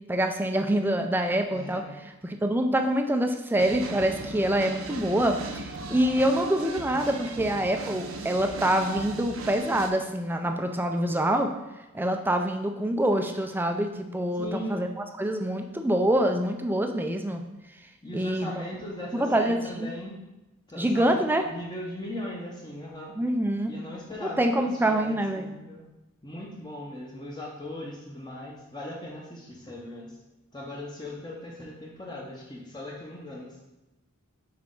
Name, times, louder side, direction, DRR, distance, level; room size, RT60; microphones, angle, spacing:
voice 1, 0.1-1.8 2.2-11.5 11.9-14.9 15.2-17.4 18.1-18.5 19.1-19.9 20.8-21.4 23.2-23.7 24.2-25.5, right 1 dB, 10° right, 5 dB, 0.4 m, -25 dB
voice 2, 1.5-2.0 14.3-14.8 18.0-20.2 20.7-23.2 23.7-25.8 26.2-30.2 30.5-33.6, left 1 dB, 20° left, -3 dB, 0.8 m, -39 dB
sound 1, 3.6-9.9, right 3 dB, 75° right, 0.7 m, -38 dB
6.0 x 4.3 x 3.7 m, 0.99 s
head